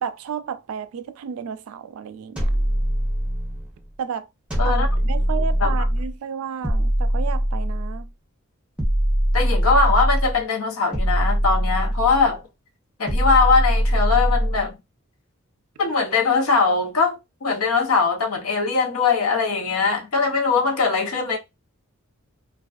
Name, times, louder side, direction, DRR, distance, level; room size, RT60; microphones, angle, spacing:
voice 1, 0.0-2.6 4.0-4.3 4.6-8.0, right 7 dB, 75° right, 0.3 m, -32 dB
sound 1, 2.4-3.7 4.5-6.1 6.6-8.1 8.8-10.4 10.9-12.3 13.1-14.7, equal, 5° right, 0.7 m, -22 dB
voice 2, 9.3-12.4 13.0-14.8 15.8-21.4, left 4 dB, 80° left, 0.7 m, -21 dB
2.3 x 2.3 x 2.4 m
head